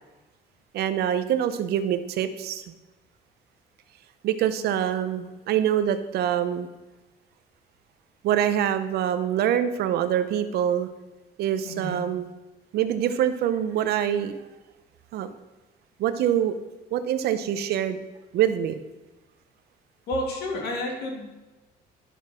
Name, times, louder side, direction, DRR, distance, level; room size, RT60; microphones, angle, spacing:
voice 1, 0.7-2.6 4.2-6.7 8.2-10.9 11.4-12.3 12.7-14.4 15.1-15.3 16.0-16.6 16.9-18.0 18.3-18.8, right 10 dB, 70° right, 11 dB, 0.7 m, -25 dB
voice 2, 11.6-12.0 20.1-21.3, left 1 dB, 75° left, 1 dB, 2.5 m, -30 dB
11.0 x 6.1 x 4.3 m, 1.1 s
cardioid pair, 110°, 17 cm